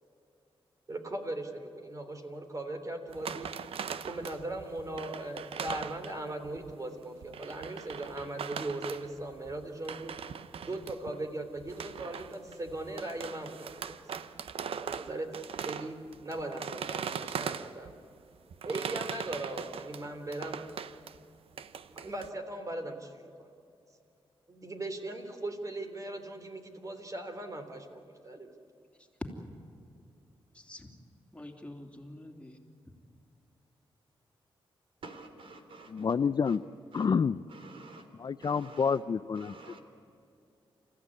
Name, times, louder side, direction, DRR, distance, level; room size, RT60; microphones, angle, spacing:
voice 1, 0.9-3.5 4.0-10.1 10.7-14.0 14.8-15.3 15.6-16.0 16.2-17.9 18.6-20.6 21.9-23.5 24.5-28.5, right 2 dB, 35° right, 3.2 m, -39 dB
sound 1, 3.1-6.7 7.2-11.2 11.6-18.0 18.5-21.2 21.5-22.3, right 7 dB, 80° right, 0.9 m, -40 dB
voice 2, 30.5-30.9 31.3-32.6 32.9-33.0, left 1 dB, 10° left, 3.1 m, -48 dB
voice 3, 35.0-36.2 36.4-36.6 36.9-37.1 37.5-38.1 38.4-39.0 39.3-39.8, right 3 dB, 65° right, 3.0 m, -49 dB
voice 4, 35.9-36.6 36.9-37.4 38.2-39.5, left 6 dB, 45° left, 0.5 m, -28 dB
29.0 x 15.0 x 9.8 m
cardioid pair, 85°, 10 cm